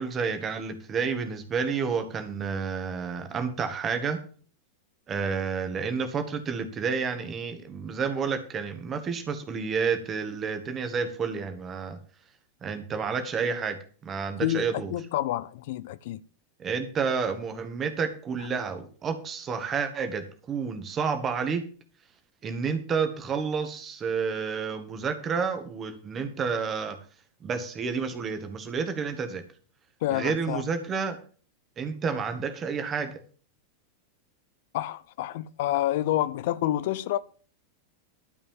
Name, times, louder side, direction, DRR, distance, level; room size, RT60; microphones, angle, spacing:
voice 1, 0.0-4.2 5.1-12.0 12.6-13.8 14.0-14.9 16.6-21.7 22.4-27.0 27.4-29.4 30.1-31.2 31.8-33.1, right 5 dB, 25° right, 1.9 m, -30 dB
voice 2, 14.4-16.2 18.4-18.5 30.0-30.7 34.7-37.2, left 14 dB, 50° left, 0.5 m, -28 dB
12.5 x 5.4 x 7.4 m
figure-of-eight pair, 90°, 0 cm